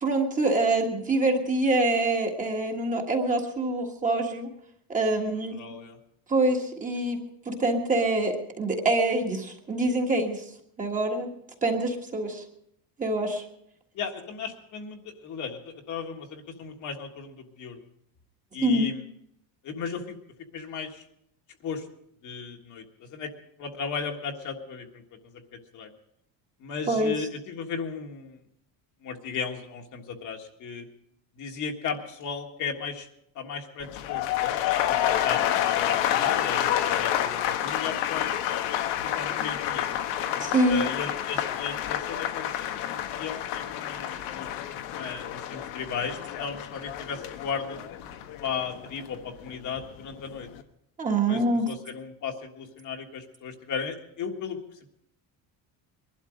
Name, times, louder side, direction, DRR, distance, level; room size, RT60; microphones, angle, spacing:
voice 1, 0.0-4.5 4.9-5.8 6.3-7.2 7.4-10.4 10.8-11.3 11.6-12.4 13.0-13.4 18.6-18.9 26.9-27.1 40.4-40.8 51.0-51.7, right 2 dB, 20° right, 1 dB, 1.6 m, -25 dB
voice 2, 5.5-6.0 13.9-17.8 18.5-19.0 19.6-20.2 20.5-21.0 21.6-21.8 22.2-23.3 23.6-25.9 26.6-28.4 29.0-30.9 31.4-33.1 33.3-38.3 39.0-39.9 40.7-44.5 44.9-47.8 48.4-50.5 51.3-54.9, left 6 dB, 45° left, 3 dB, 1.7 m, -36 dB
sound 1, 33.8-49.9 50.2-50.6, left 11 dB, 80° left, 1.3 m, -29 dB
21.5 x 12.0 x 5.1 m, 0.74 s
cardioid pair, 165°, 42 cm